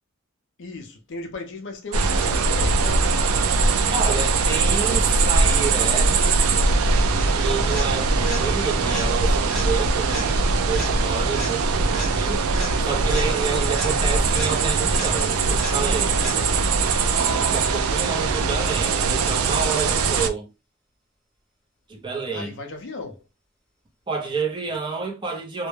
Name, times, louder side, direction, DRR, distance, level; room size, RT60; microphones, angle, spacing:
voice 1, 0.6-3.2 13.4-13.7 17.9-18.3 22.3-23.2, left 3 dB, 55° left, 0.5 m, -36 dB
sound 1, 1.9-20.3, right 4 dB, 75° right, 0.4 m, -21 dB
voice 2, 3.9-6.2 7.3-10.4 10.7-12.4 12.8-16.2 17.2-20.5 21.9-22.5 24.1-25.7, right 5 dB, 20° right, 0.5 m, -29 dB
sound 2, 7.2-16.8 24.7-24.8, equal, ahead, 0.8 m, -36 dB
2.2 x 2.1 x 3.1 m
head